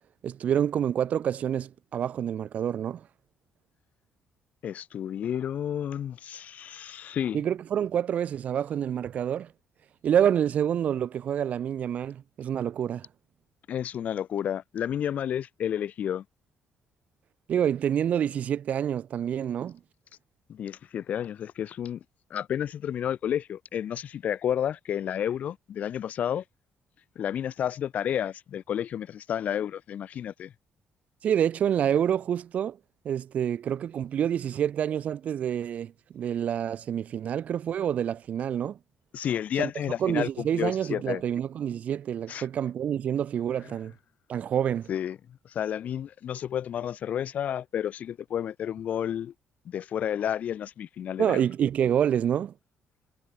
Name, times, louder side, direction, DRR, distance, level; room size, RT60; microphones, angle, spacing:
voice 1, 0.2-3.0 7.3-9.5 10.0-13.1 17.5-19.8 31.2-32.8 33.0-38.8 39.6-39.7 40.0-43.9 44.3-44.9 51.2-52.5, right 9 dB, 55° right, 0.5 m, -27 dB
voice 2, 4.6-7.4 13.7-16.2 20.5-22.0 22.3-26.4 27.2-30.5 39.1-41.2 42.3-42.5 43.6-43.8 44.9-49.3 49.7-51.5, left 9 dB, 60° left, 2.2 m, -31 dB
cardioid pair, 95°, 3 cm